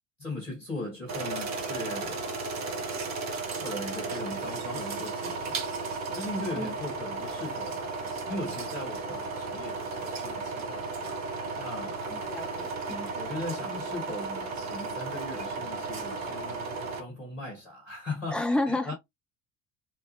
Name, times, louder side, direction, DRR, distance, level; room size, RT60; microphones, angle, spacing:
voice 1, 0.2-2.3 3.6-5.6 6.1-7.8 8.3-10.8 11.6-12.0 13.1-18.9, left 1 dB, 85° left, 2.1 m, -39 dB
sound 1, 1.1-17.0, right 3 dB, 45° right, 1.2 m, -34 dB
voice 2, 12.1-13.1 18.3-18.9, left 2 dB, ahead, 0.9 m, -31 dB
4.5 x 2.5 x 3.1 m
figure-of-eight pair, 60°, 38 cm